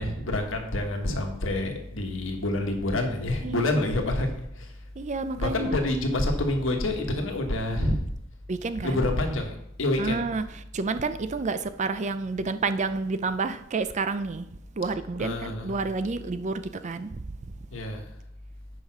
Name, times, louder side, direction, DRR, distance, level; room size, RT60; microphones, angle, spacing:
voice 1, 0.0-4.8 5.4-8.1 8.8-10.3 15.2-15.8 17.7-18.1, left 1 dB, 75° left, 3 dB, 1.4 m, -27 dB
voice 2, 5.0-5.8 6.7-6.8 7.8-8.0 8.5-9.1 10.0-17.3, right 3 dB, 35° right, 12 dB, 0.5 m, -30 dB
8.0 x 5.1 x 6.0 m, 0.76 s
head